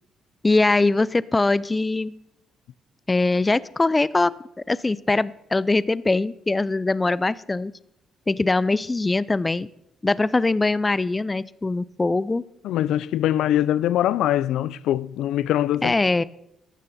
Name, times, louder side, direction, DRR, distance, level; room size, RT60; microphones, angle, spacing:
voice 1, 0.4-2.2 3.1-4.3 4.7-7.7 8.3-9.7 10.0-12.5 15.8-16.2, left 3 dB, 20° left, 0.4 m, -22 dB
voice 2, 12.6-15.9, left 12 dB, 85° left, 0.4 m, -22 dB
15.5 x 12.0 x 4.2 m
cardioid pair, 90°, 0 cm